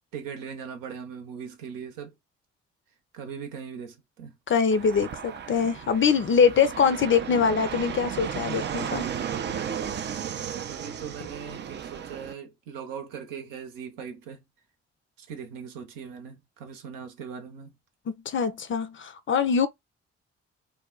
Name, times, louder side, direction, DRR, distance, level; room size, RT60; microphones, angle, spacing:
voice 1, 0.1-2.1 3.1-4.4 10.7-14.4 15.2-17.8, right 7 dB, 70° right, 0.8 m, -40 dB
voice 2, 4.5-9.0 18.1-19.7, left 6 dB, 35° left, 0.5 m, -23 dB
Fixed-wing aircraft airplane, 4.7-12.3, right 8 dB, 35° right, 0.4 m, -34 dB
2.2 x 2.0 x 3.7 m
hypercardioid pair, 40°, 33 cm